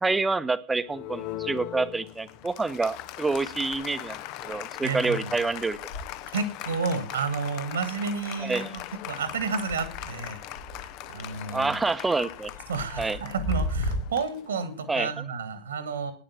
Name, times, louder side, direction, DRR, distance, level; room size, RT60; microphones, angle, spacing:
voice 1, 0.0-5.8 8.4-8.8 11.5-12.5 13.0-13.2 14.9-15.1, right 3 dB, 10° right, 14 dB, 0.8 m, -27 dB
sound 1, 0.7-2.0 2.3-14.0, equal, 80° left, 2.6 m, -39 dB
Applause, 0.9-14.9, left 14 dB, 40° left, 0.6 m, -40 dB
voice 2, 4.8-5.2 6.3-8.8 9.1-10.4 10.8-11.7 12.7-16.1, right 5 dB, 70° right, 11 dB, 1.7 m, -31 dB
10.0 x 9.8 x 7.1 m, 0.42 s
figure-of-eight pair, 90°, 0 cm